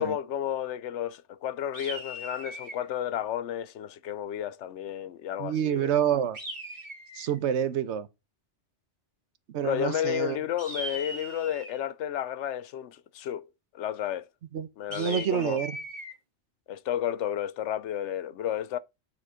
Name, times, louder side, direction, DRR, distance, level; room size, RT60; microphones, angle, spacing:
voice 1, 0.0-5.9 9.6-13.5 13.7-14.3 14.8-15.6 16.7-18.8, left 10 dB, 80° left, 0.9 m, -32 dB
sound 1, 1.7-2.9 6.3-7.4 10.6-11.8 14.9-16.1, right 1 dB, 40° right, 2.1 m, -39 dB
voice 2, 5.4-6.4 7.1-8.1 9.5-10.4 14.5-15.8, right 9 dB, 75° right, 1.0 m, -28 dB
9.2 x 4.3 x 4.9 m
omnidirectional pair, 1.2 m